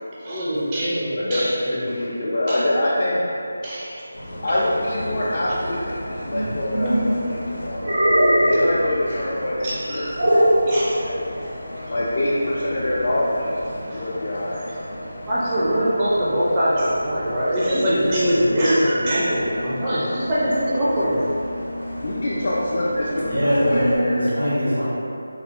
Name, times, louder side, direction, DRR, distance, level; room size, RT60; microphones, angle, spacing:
voice 1, 0.2-1.8 2.5-2.6 3.6-4.0 9.6-10.2 10.7-11.0 11.4-11.6 13.9-14.0 15.3-21.3, equal, 20° right, -9 dB, 0.4 m, -22 dB
voice 2, 1.2-3.2 4.4-7.9 8.3-10.1 10.8-11.3 11.9-13.5 13.9-14.6 22.0-24.2, left 1 dB, 45° left, -6 dB, 0.4 m, -25 dB
Bus, 4.1-24.0, left 1 dB, 90° left, 0.6 m, -35 dB
sound 1, 6.3-7.1 7.8-8.7 10.2-10.7, equal, 65° right, 0.6 m, -18 dB
voice 3, 23.2-24.8, equal, 90° right, -14 dB, 1.2 m, -22 dB
3.2 x 2.3 x 2.7 m, 2.7 s
figure-of-eight pair, 170°, 0 cm